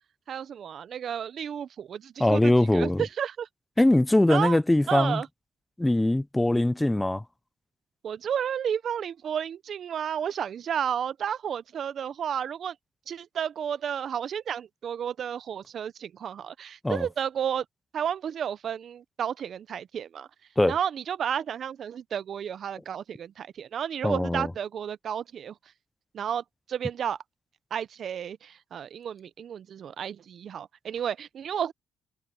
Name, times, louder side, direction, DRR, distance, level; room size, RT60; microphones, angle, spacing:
voice 1, 0.3-3.5 4.3-4.6 4.9-5.3 8.0-12.7 13.1-17.6 17.9-20.3 20.7-25.5 26.1-26.4 26.7-27.2 27.7-31.7, right 8 dB, 60° right, 0.6 m, -32 dB
voice 2, 2.2-3.0 3.8-5.2 5.8-7.2 16.8-17.1 20.6-20.7 24.0-24.5, left 1 dB, 10° left, 0.4 m, -22 dB
cardioid pair, 90°, 0 cm